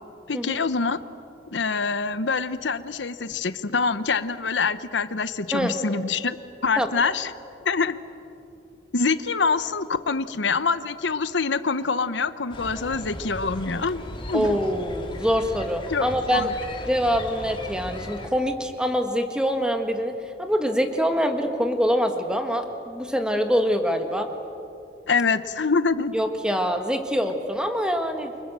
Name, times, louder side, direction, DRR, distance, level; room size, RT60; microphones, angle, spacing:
voice 1, 0.3-1.0 1.5-6.4 6.6-7.3 7.6-8.0 8.9-14.6 15.9-16.5 25.1-26.1, left 4 dB, 85° left, 13 dB, 0.9 m, -25 dB
sound 1, 12.5-18.3, left 1 dB, 30° left, 2.3 m, -37 dB
voice 2, 14.3-16.5 16.9-24.3 26.1-28.3, equal, 5° right, 5 dB, 1.8 m, -24 dB
29.0 x 25.0 x 7.6 m, 2.7 s
head